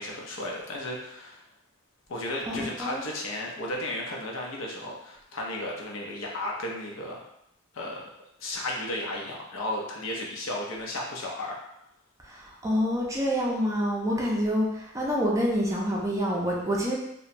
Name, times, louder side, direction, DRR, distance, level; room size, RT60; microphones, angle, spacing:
voice 1, 0.0-1.4 2.1-7.2 7.7-8.1 8.4-11.6, left 1 dB, 70° left, -2 dB, 0.6 m, -34 dB
voice 2, 2.5-3.0 12.2-17.0, equal, 15° right, -3 dB, 0.5 m, -27 dB
2.9 x 2.1 x 2.5 m, 0.78 s
head